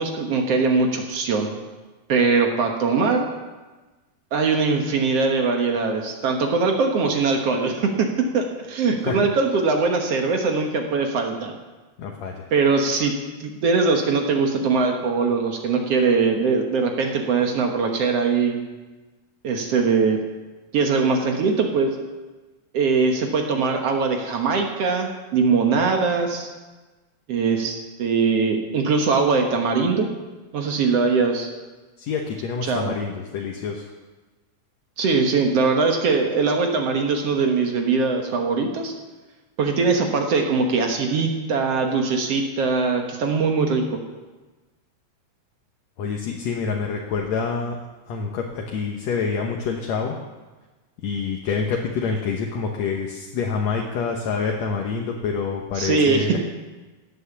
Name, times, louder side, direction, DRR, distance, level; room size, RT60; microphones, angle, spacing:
voice 1, 0.0-1.6 2.1-3.3 4.3-11.5 12.5-13.1 13.4-18.6 19.4-20.2 20.7-22.0 22.7-26.5 27.3-30.1 30.5-31.5 32.6-32.9 35.0-38.9 39.6-43.8 55.8-56.4, right 4 dB, 60° right, 2 dB, 2.1 m, -21 dB
voice 2, 12.0-12.5 32.0-33.9 46.0-47.8 48.1-50.2 51.0-56.4, left 5 dB, 70° left, 1 dB, 2.2 m, -27 dB
17.0 x 8.0 x 7.1 m, 1.2 s
omnidirectional pair, 3.4 m